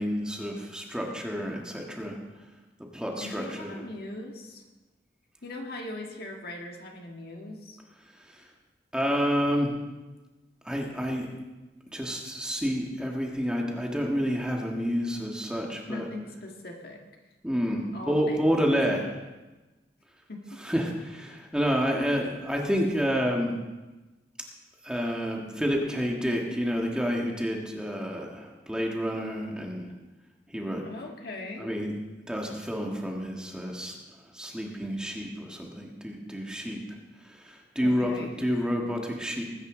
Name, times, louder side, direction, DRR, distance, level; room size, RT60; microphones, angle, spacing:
voice 1, 0.0-2.2 2.9-3.7 8.2-8.4 8.9-9.8 10.6-11.3 11.9-16.1 17.4-19.2 20.6-23.5 24.8-29.9 30.5-30.8 31.6-31.9 32.3-34.0 34.3-37.0 37.2-39.4, equal, 5° right, 0 dB, 1.6 m, -29 dB
voice 2, 3.2-4.6 5.4-7.8 15.9-17.0 17.9-18.5 20.3-20.6 30.8-31.7 37.8-38.4, left 2 dB, 60° left, 1 dB, 1.7 m, -40 dB
20.5 x 9.6 x 3.8 m, 1.1 s
head